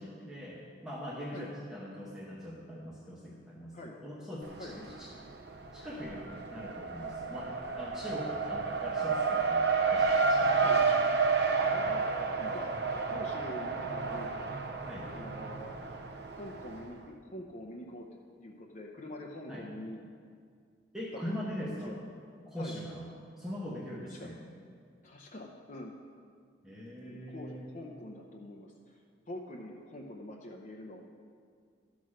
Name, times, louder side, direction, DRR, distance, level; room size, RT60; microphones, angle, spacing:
voice 1, 0.0-5.1 5.7-9.6 9.9-10.7 14.8-15.1 19.5-19.6 20.9-21.9 22.5-23.1 23.4-24.4 26.6-27.7, equal, 5° right, -5 dB, 1.0 m, -42 dB
Race car auto racing, 4.4-5.2 5.5-16.8, right 4 dB, 60° right, 0.7 m, -30 dB
voice 2, 11.7-12.1 12.4-12.7 13.1-14.3 15.1-15.7 16.3-18.1 18.4-20.0 21.1-21.2 21.6-22.0 22.6-22.8 24.0-24.3 25.0-25.9 27.0-31.0, left 1 dB, 40° left, -1 dB, 0.7 m, -45 dB
12.5 x 6.2 x 6.3 m, 2.1 s
head